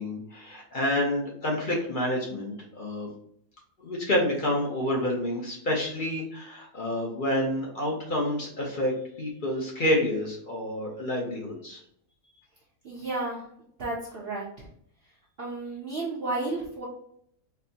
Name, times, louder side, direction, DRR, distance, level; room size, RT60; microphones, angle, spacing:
voice 1, 0.0-3.1 3.8-11.8, left 1 dB, 45° left, -2 dB, 0.8 m, -28 dB
voice 2, 12.8-13.4 13.8-14.7 15.4-16.8, right 2 dB, 55° right, -5 dB, 0.8 m, -32 dB
4.3 x 2.1 x 2.7 m, 0.68 s
omnidirectional pair, 1.5 m